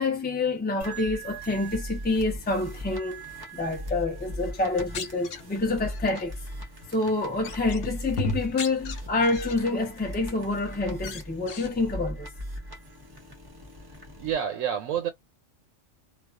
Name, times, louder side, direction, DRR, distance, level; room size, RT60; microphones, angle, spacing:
voice 1, 0.0-3.2 3.5-6.3 6.9-12.3, left 3 dB, 10° left, 0.5 m, -27 dB
sound 1, 0.8-14.3, equal, 20° right, 0.7 m, -39 dB
sound 2, 4.6-6.2 6.8-7.1 7.4-9.7 10.2-10.6 11.0-11.7, left 3 dB, 75° left, 1.1 m, -36 dB
voice 2, 14.2-15.1, right 9 dB, 90° right, 1.0 m, -28 dB
2.4 x 2.3 x 2.3 m
omnidirectional pair, 1.3 m